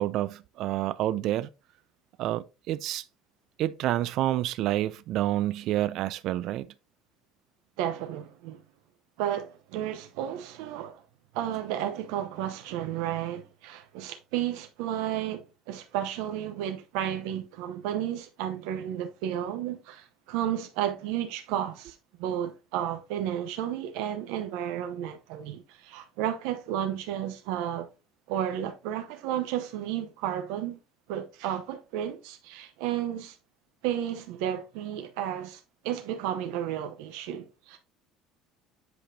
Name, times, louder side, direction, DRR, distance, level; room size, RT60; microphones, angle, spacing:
voice 1, 0.0-1.5 2.2-3.0 3.6-6.7, right 14 dB, 50° right, 0.4 m, -28 dB
voice 2, 7.8-8.6 9.2-11.0 11.3-27.9 28.3-30.8 31.1-33.4 33.8-37.8, right 11 dB, 75° right, 0.8 m, -32 dB
7.9 x 5.1 x 2.7 m
cardioid pair, 160°, 0 cm